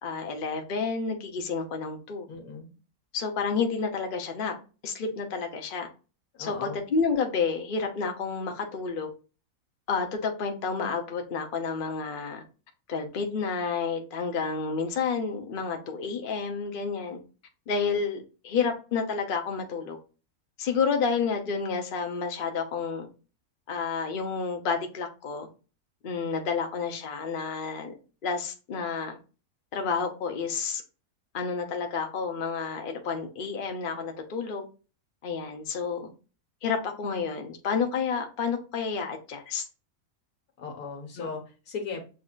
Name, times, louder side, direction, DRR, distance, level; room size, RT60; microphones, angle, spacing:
voice 1, 0.0-2.3 3.1-4.5 4.8-5.9 6.4-9.1 9.9-12.4 12.9-17.2 17.7-20.0 20.6-23.1 23.7-25.5 26.0-27.9 28.2-29.2 29.7-30.8 31.3-34.6 35.2-36.1 36.6-39.6 41.2-41.3, left 5 dB, 45° left, 0.9 m, -30 dB
voice 2, 2.3-2.7 6.3-6.8 40.6-42.0, left 4 dB, 80° left, 1.7 m, -37 dB
7.5 x 2.7 x 2.4 m
omnidirectional pair, 1.6 m